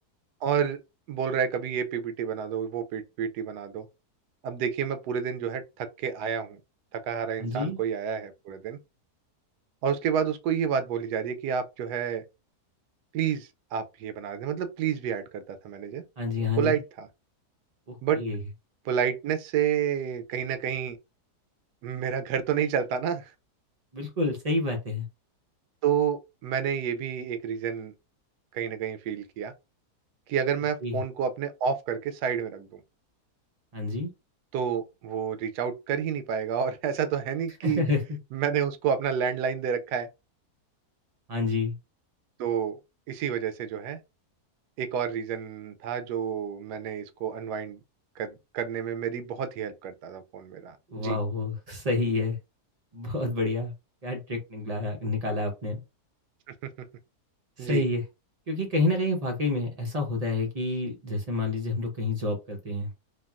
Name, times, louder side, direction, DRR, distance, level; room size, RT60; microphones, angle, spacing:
voice 1, 0.4-0.8 1.1-3.9 4.4-6.6 6.9-8.8 9.8-12.2 13.1-16.0 16.6-17.1 18.0-18.2 18.9-21.0 21.8-23.3 25.8-27.9 28.5-29.5 30.3-32.8 34.5-37.8 38.3-40.1 42.4-42.8 43.1-44.0 44.8-47.8 48.2-51.2 56.6-56.7 57.6-57.8, right 8 dB, 90° right, 1.1 m, -29 dB
voice 2, 7.4-7.8 16.2-16.8 17.9-18.4 23.9-25.1 30.8-31.0 33.7-34.1 37.6-38.2 41.3-41.7 50.9-52.4 52.9-53.7 54.0-55.8 57.6-58.0 58.5-62.9, left 2 dB, 60° right, 0.4 m, -28 dB
3.5 x 2.2 x 2.3 m
omnidirectional pair, 1.7 m